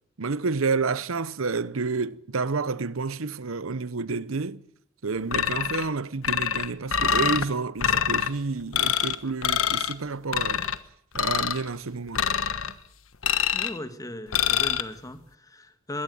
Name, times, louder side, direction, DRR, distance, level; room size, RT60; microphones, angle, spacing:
voice 1, 0.2-4.6 5.0-10.6 11.1-12.3, right 4 dB, 85° right, 0.9 m, -29 dB
sound 1, 5.3-5.9 6.2-7.5 7.8-8.3 8.7-9.2 9.4-9.9 10.3-10.8 11.2-11.6 12.2-12.7 13.2-13.8 14.3-14.8, left 8 dB, 85° left, 1.3 m, -25 dB
voice 2, 13.5-16.0, left 1 dB, 15° left, 1.7 m, -37 dB
21.0 x 17.5 x 9.4 m
head